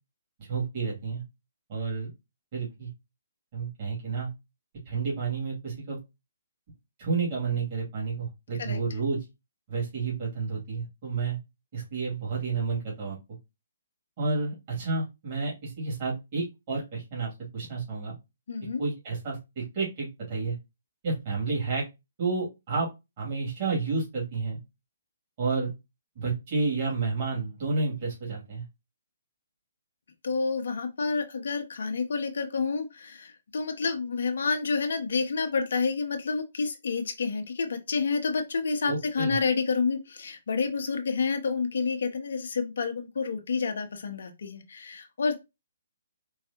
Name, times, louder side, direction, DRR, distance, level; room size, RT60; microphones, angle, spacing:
voice 1, 0.4-1.2 1.7-2.1 2.5-2.9 3.5-4.3 4.9-6.0 7.0-9.2 9.7-11.4 11.7-13.2 14.2-18.1 18.8-20.5 21.0-21.8 22.2-22.9 23.2-24.6 25.4-25.7 26.2-28.6 38.9-39.4, right 4 dB, 40° right, 2.4 m, -30 dB
voice 2, 18.5-18.8 30.2-45.4, left 4 dB, 60° left, 0.8 m, -29 dB
4.7 x 3.2 x 2.8 m
figure-of-eight pair, 130°, 0 cm